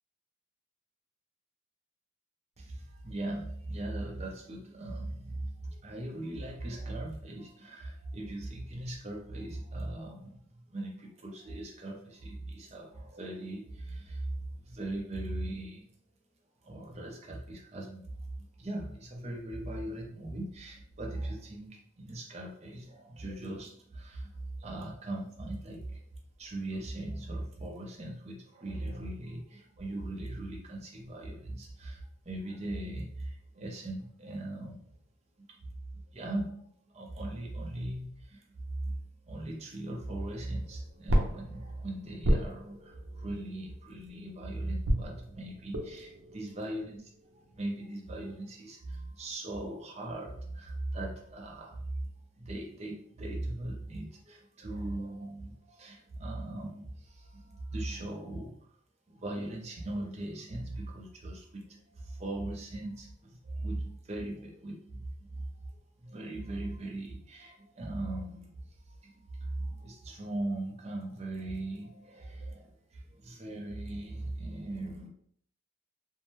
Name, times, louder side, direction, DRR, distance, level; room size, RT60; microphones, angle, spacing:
voice 1, 2.6-15.8 16.6-24.3 24.6-26.0 26.4-34.9 35.4-35.6 35.9-38.5 38.8-39.0 39.2-47.0 47.3-51.9 52.4-58.5 59.1-65.7 66.0-68.5 68.9-75.1, right 1 dB, 35° right, 0 dB, 0.6 m, -39 dB
sound 1, 40.2-44.3 44.8-47.9, equal, 90° right, 0.6 m, -34 dB
2.6 x 2.1 x 3.0 m, 0.63 s
head